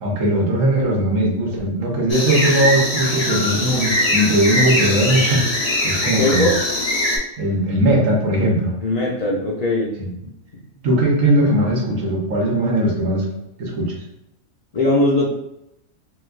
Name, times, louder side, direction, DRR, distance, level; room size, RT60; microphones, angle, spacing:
voice 1, 0.0-5.4 5.8-6.5 7.4-8.7 10.0-10.1 10.8-13.3 13.6-13.9, right 1 dB, 80° right, -1 dB, 1.3 m, -19 dB
sound 1, 2.1-7.2, left 1 dB, 35° left, 0.7 m, -21 dB
voice 2, 6.0-6.6 8.8-10.0 10.8-10.9 14.7-15.3, left 2 dB, 70° left, -4 dB, 0.3 m, -20 dB
3.9 x 2.6 x 2.4 m, 0.84 s
omnidirectional pair, 1.4 m